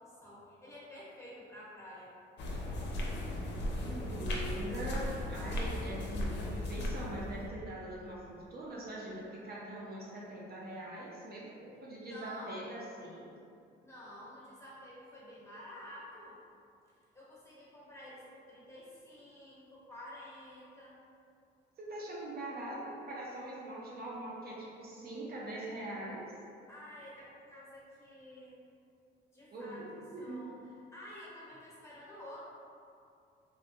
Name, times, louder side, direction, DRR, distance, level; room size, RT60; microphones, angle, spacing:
voice 1, 0.0-2.1 12.0-12.6 13.8-16.4 17.1-21.0 26.7-28.6 29.3-30.6 30.9-32.4, left 1 dB, 15° left, -7 dB, 1.1 m, -50 dB
sound 1, 2.4-7.5, left 1 dB, 60° left, 0.5 m, -36 dB
voice 2, 3.2-13.3 21.8-26.3 29.5-29.9 30.1-30.5, right 1 dB, 50° right, -5 dB, 0.6 m, -42 dB
3.6 x 2.1 x 2.7 m, 2.4 s
cardioid pair, 90°, 20 cm